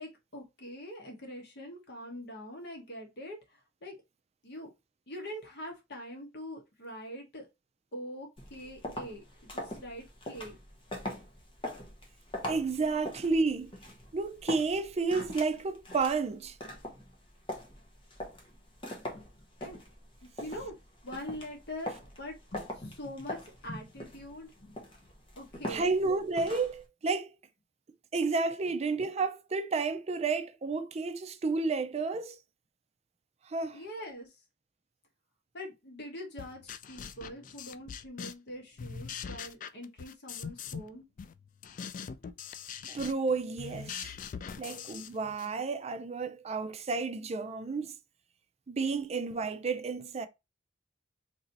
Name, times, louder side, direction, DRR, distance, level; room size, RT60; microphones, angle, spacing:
voice 1, 0.0-3.4 3.8-3.9 4.4-4.7 5.1-7.5 7.9-10.6 19.1-19.2 19.6-19.8 20.4-20.7 21.0-24.7 25.4-25.9 33.7-34.3 35.5-41.0, equal, 65° left, 1.1 m, -43 dB
sound 1, 8.4-26.8, left 1 dB, 30° left, 0.9 m, -43 dB
voice 2, 12.4-13.7 14.1-16.6 25.7-27.4 28.1-32.4 33.5-33.8 42.8-44.1 44.6-47.9 48.7-50.3, right 4 dB, 35° right, 0.4 m, -31 dB
sound 2, 36.4-38.5 38.8-40.9 41.2-45.5, left 7 dB, 45° left, 0.3 m, -42 dB
3.0 x 2.7 x 3.9 m
head